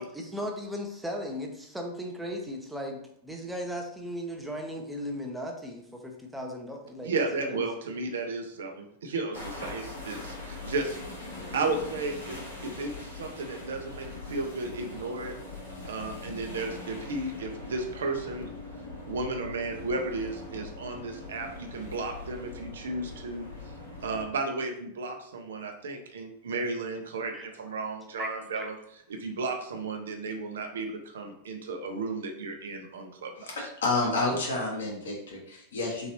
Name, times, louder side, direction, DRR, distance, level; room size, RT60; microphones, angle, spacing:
voice 1, 0.0-7.1 7.4-7.6 27.3-27.5 28.2-28.7, equal, 5° right, 2 dB, 0.8 m, -37 dB
voice 2, 7.0-11.0 11.5-15.3 15.9-18.5 19.0-23.5 24.0-28.7 29.1-33.3, right 3 dB, 65° right, 4 dB, 0.7 m, -34 dB
sound 1, 9.3-24.3, left 2 dB, 85° left, 1.8 m, -41 dB
voice 3, 33.4-36.1, left 2 dB, 65° left, -2 dB, 1.4 m, -30 dB
3.9 x 3.9 x 3.0 m, 0.71 s
figure-of-eight pair, 90°, 0 cm